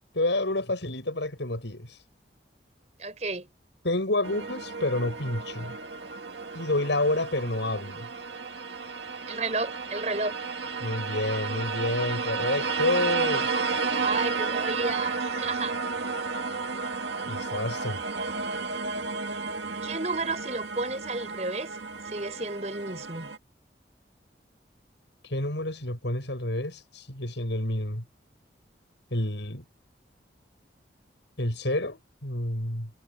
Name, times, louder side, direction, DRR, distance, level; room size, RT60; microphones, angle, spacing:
voice 1, 0.1-2.0 3.8-5.7 6.5-8.1 10.8-13.5 17.2-18.0 25.2-28.0 29.1-29.6 31.4-32.9, left 1 dB, 85° left, 7.1 m, -29 dB
voice 2, 3.0-3.5 9.3-10.4 13.9-15.8 19.8-21.8 22.1-23.3, right 3 dB, 40° right, 5.8 m, -32 dB
sound 1, 4.2-23.4, right 4 dB, 75° right, 2.2 m, -32 dB
head